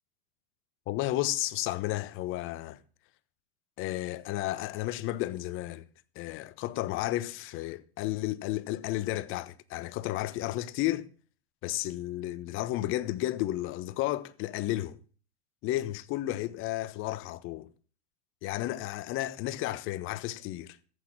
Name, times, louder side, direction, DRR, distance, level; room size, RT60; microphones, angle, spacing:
voice 1, 0.9-2.8 3.8-5.8 6.1-11.1 11.6-15.0 15.6-17.7 18.4-20.8, left 15 dB, 40° left, 1.1 m, -32 dB
14.5 x 8.5 x 6.1 m
hypercardioid pair, 110°, 32 cm